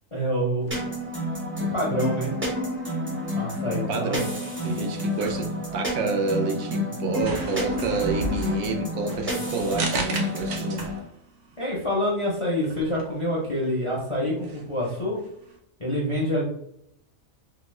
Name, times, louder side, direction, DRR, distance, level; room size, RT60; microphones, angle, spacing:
voice 1, 0.1-0.7 1.6-2.3 3.3-4.3 11.6-15.2 15.8-16.4, equal, 40° left, -5 dB, 0.4 m, -27 dB
sound 1, 0.6-15.6, right 2 dB, 65° right, 0.8 m, -38 dB
sound 2, 0.7-11.0, left 1 dB, 15° right, 0.5 m, -30 dB
voice 2, 3.7-4.3 4.6-10.9, right 3 dB, 85° right, 3 dB, 1.0 m, -28 dB
2.8 x 2.0 x 3.1 m, 0.75 s
omnidirectional pair, 1.4 m